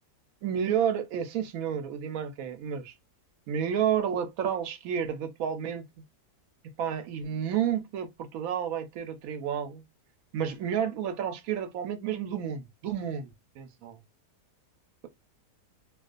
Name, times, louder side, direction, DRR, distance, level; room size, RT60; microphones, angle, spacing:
voice 1, 0.4-2.9 3.5-5.8 6.8-9.8 10.3-13.3 13.6-14.0, right 8 dB, 70° right, 0.9 m, -30 dB
2.4 x 2.4 x 2.4 m
omnidirectional pair, 1.7 m